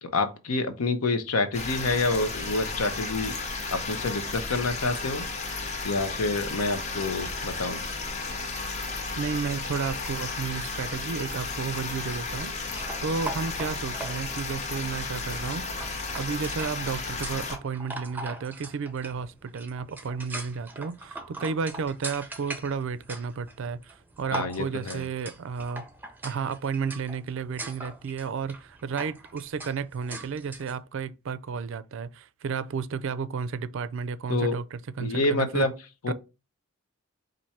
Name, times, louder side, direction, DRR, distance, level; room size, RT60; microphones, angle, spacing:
voice 1, 0.0-3.4 3.7-5.2 5.8-7.8 24.3-25.0 34.3-34.6 35.0-35.7 36.0-36.1, left 3 dB, 90° left, 0.8 m, -27 dB
sound 1, 1.5-17.6, left 3 dB, 35° left, 0.7 m, -33 dB
voice 2, 9.2-15.9 16.1-25.8 26.2-35.7 36.1-36.2, right 5 dB, 60° right, 0.4 m, -32 dB
sound 2, 12.7-30.8, right 2 dB, 10° right, 0.5 m, -41 dB
4.5 x 2.6 x 4.2 m
head